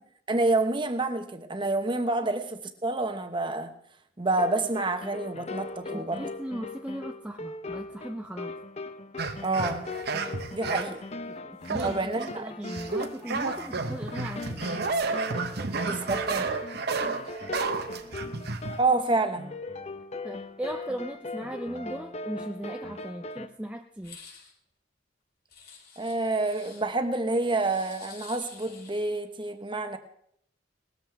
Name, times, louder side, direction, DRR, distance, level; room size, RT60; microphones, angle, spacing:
voice 1, 0.3-3.7 4.2-6.2 9.4-9.9 10.5-11.0 11.8-12.5 15.8-16.5 18.8-19.5 26.0-30.0, right 2 dB, 25° right, 8 dB, 1.1 m, -28 dB
sound 1, 4.3-23.5, left 2 dB, 35° left, 0.7 m, -39 dB
voice 2, 5.8-8.6 11.3-14.6 15.5-15.7 20.2-24.2, right 1 dB, 5° right, 4 dB, 0.5 m, -38 dB
sound 2, 9.2-11.0 11.7-12.3 12.7-18.8, right 4 dB, 60° right, 1.0 m, -31 dB
sound 3, 24.0-24.5 25.5-26.8 27.4-29.2, left 6 dB, 55° left, 3.9 m, -49 dB
19.0 x 13.5 x 3.5 m, 0.69 s
head